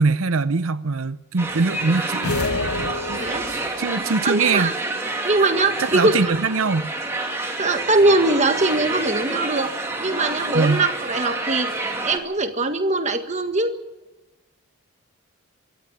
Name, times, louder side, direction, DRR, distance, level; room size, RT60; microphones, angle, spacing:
voice 1, 0.0-4.7 5.8-6.9 10.5-10.8, right 4 dB, 65° right, 0.7 m, -23 dB
sound 1, 1.4-12.2, right 2 dB, 10° right, 2.8 m, -28 dB
sound 2, 2.2-3.8, left 2 dB, 80° left, 1.5 m, -27 dB
voice 2, 4.2-4.7 5.2-6.2 7.6-11.7 12.0-13.7, right 2 dB, 30° right, 1.7 m, -21 dB
25.0 x 13.0 x 10.0 m
head